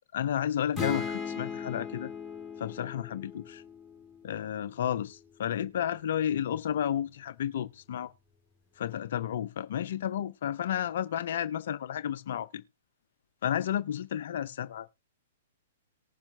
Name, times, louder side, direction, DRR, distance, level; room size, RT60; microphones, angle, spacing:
voice 1, 0.1-2.1 2.6-3.6 4.2-8.1 8.8-12.6 13.4-14.9, left 10 dB, 60° left, 0.6 m, -32 dB
sound 1, 0.7-4.5, left 6 dB, 5° left, 3.2 m, -38 dB
19.0 x 7.1 x 2.6 m
figure-of-eight pair, 115°, 0 cm